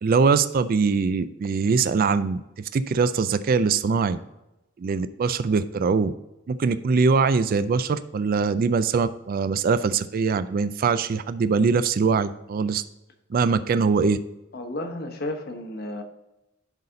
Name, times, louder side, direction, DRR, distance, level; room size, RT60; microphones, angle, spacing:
voice 1, 0.0-4.2 4.8-6.1 6.5-12.8 13.3-14.2, right 5 dB, 50° right, 13 dB, 0.4 m, -22 dB
voice 2, 14.5-16.0, left 1 dB, 55° left, 5 dB, 1.1 m, -32 dB
11.0 x 4.1 x 3.8 m, 0.95 s
head